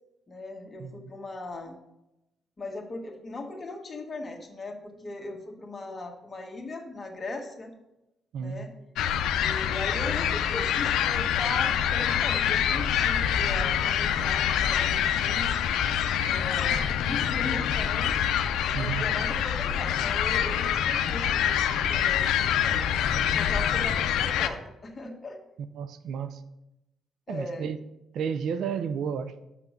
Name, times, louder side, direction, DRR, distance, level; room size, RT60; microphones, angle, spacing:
voice 1, 0.3-1.8 2.6-7.7 8.4-8.7 9.4-15.5 16.2-18.2 18.6-25.4 27.3-27.7, left 2 dB, 30° left, 2 dB, 1.5 m, -38 dB
voice 2, 8.3-8.7 18.7-19.1 25.7-26.4 27.3-27.8 28.1-29.3, right 7 dB, 75° right, 12 dB, 0.5 m, -32 dB
sound 1, 9.0-24.5, left 9 dB, 85° left, 0.5 m, -26 dB
6.1 x 5.9 x 6.5 m, 0.91 s
cardioid pair, 90°, 0 cm